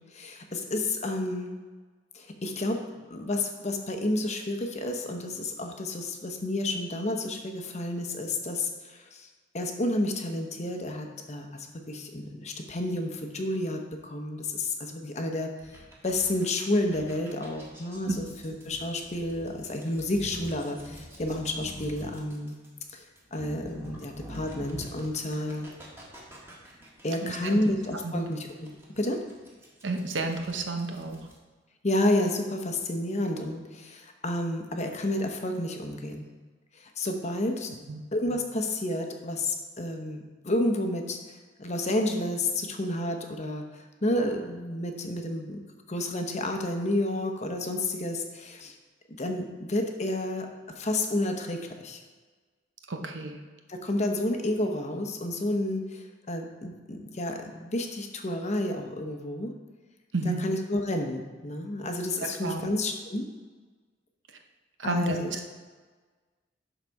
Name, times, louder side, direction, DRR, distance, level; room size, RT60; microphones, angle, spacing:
voice 1, 0.1-1.6 2.1-2.8 3.1-9.3 9.5-22.6 22.9-23.0 23.3-25.7 27.0-28.7 29.0-29.2 31.8-36.3 36.7-37.7 38.1-45.6 45.9-48.7 49.2-50.5 50.8-52.0 53.7-59.5 60.4-63.3 64.8-65.3, left 1 dB, 40° left, 4 dB, 0.9 m, -30 dB
sound 1, 15.6-31.3, equal, 15° right, 1.5 m, -45 dB
voice 2, 27.2-27.6 27.9-28.2 29.8-31.2 37.9-38.0 52.9-53.4 60.1-60.4 62.2-62.6 64.8-65.4, right 3 dB, 85° right, 4 dB, 0.9 m, -31 dB
11.5 x 4.0 x 4.7 m, 1.4 s
head